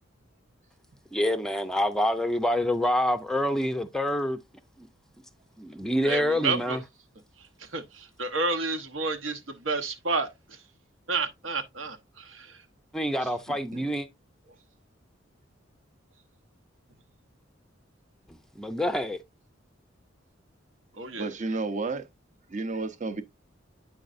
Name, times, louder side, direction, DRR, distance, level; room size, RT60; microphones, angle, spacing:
voice 1, 1.1-4.4 4.8-4.9 5.6-6.8 12.9-14.1 18.6-19.2, left 1 dB, 5° left, 0.5 m, -26 dB
voice 2, 6.0-6.8 7.6-10.6 11.1-12.6 20.9-21.3, right 3 dB, 80° right, 1.0 m, -31 dB
voice 3, 13.2-13.8 21.2-22.1 22.5-23.2, right 3 dB, 40° right, 0.7 m, -32 dB
8.7 x 5.2 x 2.5 m
head